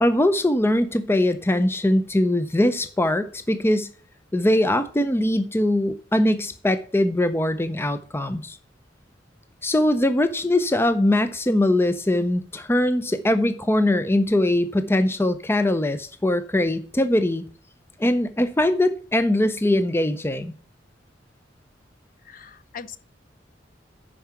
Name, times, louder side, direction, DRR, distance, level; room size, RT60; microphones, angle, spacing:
voice 1, 0.0-3.9 4.3-8.6 9.6-17.4 18.0-20.5, left 1 dB, 15° left, 0.5 m, -21 dB
voice 2, 22.2-23.0, left 6 dB, 50° left, 0.8 m, -41 dB
11.5 x 4.8 x 5.8 m
head